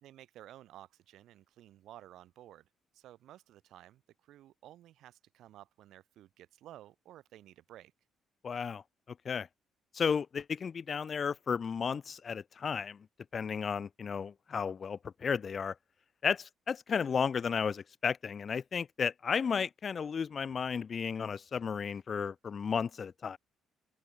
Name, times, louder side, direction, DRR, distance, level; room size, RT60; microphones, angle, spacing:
voice 1, 0.0-2.7 2.9-7.9, right 13 dB, 75° right, 2.5 m, -54 dB
voice 2, 8.4-9.5 9.9-13.1 13.3-15.7 16.2-23.4, left 6 dB, 40° left, 0.6 m, -33 dB
open air
cardioid pair, 120°, 0 cm